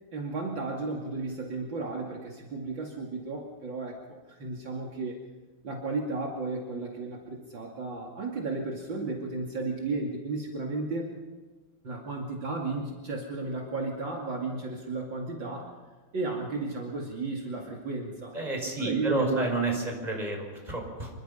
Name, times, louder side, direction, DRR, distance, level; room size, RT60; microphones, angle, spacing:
voice 1, 0.1-5.2 5.6-11.1 11.8-15.7 16.1-18.4 18.8-19.5, right 3 dB, 60° right, -1 dB, 3.2 m, -34 dB
voice 2, 18.3-21.1, right 2 dB, 20° right, 1 dB, 5.9 m, -30 dB
26.5 x 23.5 x 5.7 m, 1.3 s
omnidirectional pair, 2.3 m